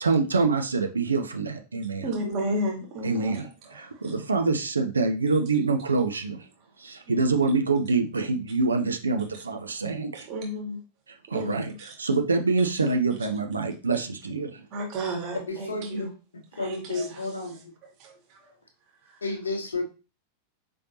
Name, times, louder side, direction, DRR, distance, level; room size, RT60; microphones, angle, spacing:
voice 1, 0.0-2.1 3.0-3.4 3.8-6.5 6.8-10.3 11.3-11.7 12.0-14.6, right 4 dB, 75° right, 5 dB, 0.5 m, -25 dB
voice 2, 2.0-4.2 7.1-7.5 10.1-10.8 11.3-11.9 14.7-16.1 16.5-18.5 19.0-19.3, right 1 dB, 40° right, 1 dB, 1.6 m, -34 dB
voice 3, 15.7-16.1 16.6-17.6 19.2-19.9, left 2 dB, 75° left, 4 dB, 1.0 m, -31 dB
5.3 x 3.4 x 2.8 m, 0.32 s
figure-of-eight pair, 90°, 0 cm